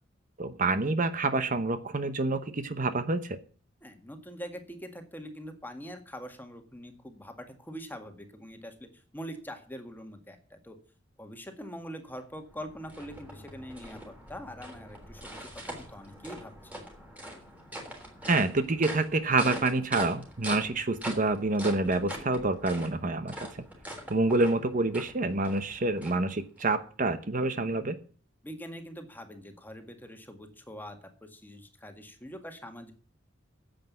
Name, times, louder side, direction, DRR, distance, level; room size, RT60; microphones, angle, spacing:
voice 1, 0.4-3.4 18.2-23.6 24.1-28.0, right 2 dB, 45° right, 11 dB, 0.9 m, -27 dB
voice 2, 3.8-8.9 9.1-10.8 11.2-16.8 28.4-32.9, equal, 10° left, 6 dB, 1.8 m, -44 dB
sound 1, 12.2-26.7, equal, 10° right, 3.4 m, -43 dB
10.0 x 7.9 x 9.4 m, 0.42 s
head